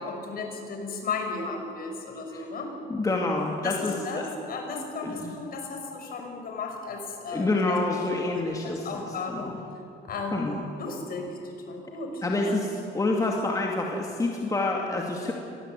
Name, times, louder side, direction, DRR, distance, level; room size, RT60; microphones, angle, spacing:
voice 1, 0.0-2.7 3.6-8.4 8.6-9.5 10.1-10.3 10.7-11.4 11.7-12.6, left 4 dB, 50° left, 2 dB, 6.2 m, -35 dB
voice 2, 2.9-4.3 5.0-5.4 7.3-9.6 10.3-10.6 12.2-15.3, left 2 dB, 15° left, 0 dB, 2.4 m, -28 dB
25.0 x 19.5 x 9.0 m, 2.7 s
cardioid pair, 115°, 20 cm